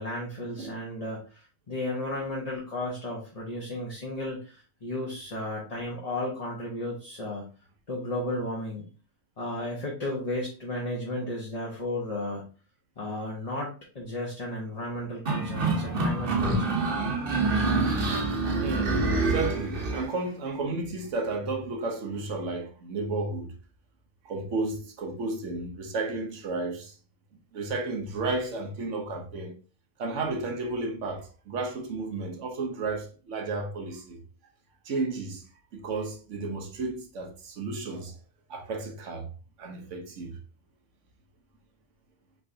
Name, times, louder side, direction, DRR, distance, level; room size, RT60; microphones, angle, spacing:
voice 1, 0.0-7.4 7.9-8.9 9.4-12.4 13.0-16.8, left 1 dB, 35° left, 1.0 m, -34 dB
sound 1, 15.3-20.1, right 3 dB, 50° right, 1.1 m, -26 dB
voice 2, 18.6-23.5 24.2-26.9 27.5-29.5 30.0-34.2 34.8-35.4 35.7-38.2 38.5-39.3 39.6-40.4, right 3 dB, 90° right, 1.3 m, -32 dB
5.7 x 3.2 x 2.7 m
omnidirectional pair, 1.2 m